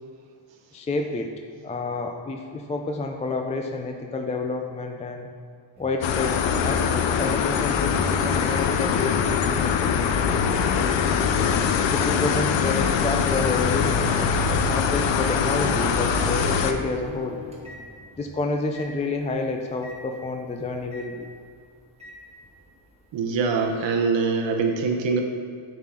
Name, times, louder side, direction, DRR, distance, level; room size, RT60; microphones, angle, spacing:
voice 1, 0.7-1.3 1.6-5.3 5.8-10.6 11.3-14.1 14.6-17.4 18.2-21.3, left 3 dB, 15° left, 3 dB, 0.3 m, -29 dB
Microwave oven, 5.8-18.3 18.7-18.9 19.8-20.0 20.9-21.1 22.0-22.2, left 4 dB, 15° right, 1.3 m, -37 dB
sound 1, 6.0-16.7, left 6 dB, 70° left, 0.7 m, -23 dB
voice 2, 23.1-25.2, right 4 dB, 65° right, 3 dB, 0.9 m, -23 dB
7.4 x 7.1 x 3.7 m, 2.2 s
cardioid pair, 135°, 47 cm